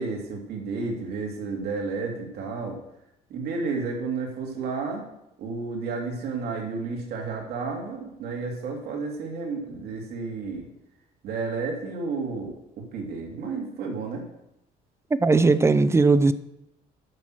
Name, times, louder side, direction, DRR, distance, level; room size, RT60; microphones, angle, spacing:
voice 1, 0.0-2.8 3.3-5.0 5.4-10.7 11.2-12.5 12.9-14.2, right 4 dB, 70° right, 2.5 m, -31 dB
voice 2, 15.2-16.3, right 3 dB, 15° right, 0.5 m, -18 dB
9.6 x 6.0 x 6.3 m
cardioid pair, 110°, 17 cm